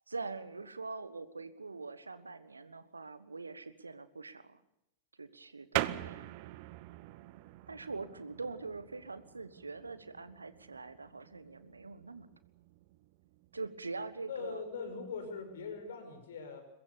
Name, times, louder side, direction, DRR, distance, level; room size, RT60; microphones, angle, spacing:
voice 1, 0.1-4.6 5.2-6.3 7.7-12.3 13.5-14.6, right 3 dB, 80° right, 14 dB, 1.4 m, -43 dB
sound 1, 5.7-15.9, right 18 dB, 45° right, 0.9 m, -44 dB
voice 2, 14.3-16.6, left 5 dB, 60° left, 7 dB, 5.6 m, -41 dB
23.0 x 21.0 x 6.9 m, 0.83 s
figure-of-eight pair, 90°, 0 cm